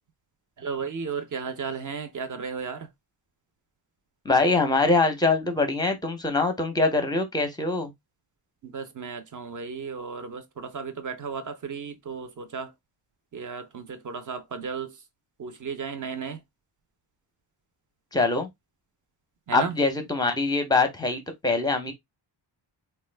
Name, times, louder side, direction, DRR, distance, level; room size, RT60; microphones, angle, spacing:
voice 1, 0.6-2.9 8.6-12.7 13.3-14.9 15.4-16.4 19.5-19.7, right 5 dB, 40° right, 0.6 m, -34 dB
voice 2, 4.3-7.9 18.1-18.5 19.5-21.9, left 3 dB, 10° left, 0.6 m, -23 dB
4.1 x 2.3 x 3.2 m
wide cardioid pair, 180°, 48 cm